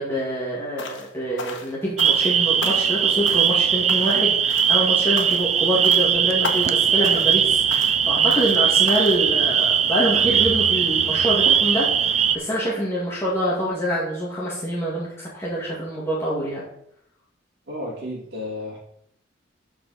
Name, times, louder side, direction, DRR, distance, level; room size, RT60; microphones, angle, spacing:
voice 1, 0.0-16.6, equal, 15° left, -6 dB, 2.1 m, -26 dB
sound 1, 0.8-1.1 1.4-2.3 2.6-3.0 3.2-3.6 3.9-4.2 4.5-4.8 5.2-5.5 5.8-6.1 6.4-6.8 7.0-7.4 7.7-8.0 8.3-8.6 8.9-9.2, left 4 dB, 80° left, 1.3 m, -34 dB
sound 2, 2.0-12.4, right 8 dB, 35° right, 0.5 m, -20 dB
sound 3, 10.1-12.4, equal, 80° right, 2.3 m, -36 dB
voice 2, 17.7-18.8, left 1 dB, 60° right, -8 dB, 2.5 m, -32 dB
12.5 x 4.9 x 4.2 m, 0.73 s
head